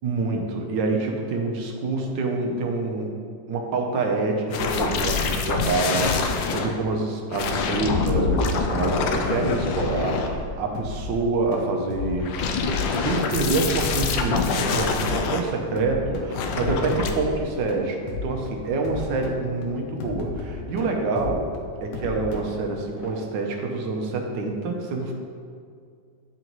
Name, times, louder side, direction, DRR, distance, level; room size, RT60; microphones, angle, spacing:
voice 1, 0.0-3.1 3.5-12.5 13.0-21.5 21.8-25.1, right 3 dB, 80° right, 2 dB, 1.5 m, -26 dB
sound 1, 4.5-6.7 7.3-10.7 12.0-15.4 16.3-17.1, left 4 dB, 85° left, 1.3 m, -25 dB
sound 2, 10.7-23.1, left 3 dB, 60° left, 1.0 m, -35 dB
9.8 x 3.9 x 3.0 m, 2.2 s
omnidirectional pair, 2.0 m